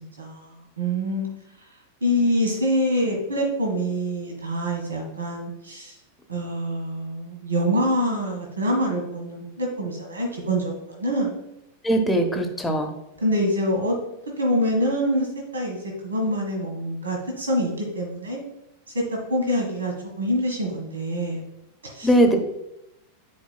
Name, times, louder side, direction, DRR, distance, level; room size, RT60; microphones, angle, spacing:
voice 1, 0.2-0.5 0.8-1.3 2.0-5.9 6.3-11.4 13.2-14.0 14.4-15.3 15.5-18.4 18.9-21.4 21.8-22.1, equal, 75° right, 0 dB, 1.6 m, -25 dB
voice 2, 11.8-12.9 22.0-22.4, right 1 dB, 10° left, 4 dB, 1.0 m, -20 dB
9.3 x 4.6 x 2.2 m, 0.86 s
figure-of-eight pair, 90°, 0 cm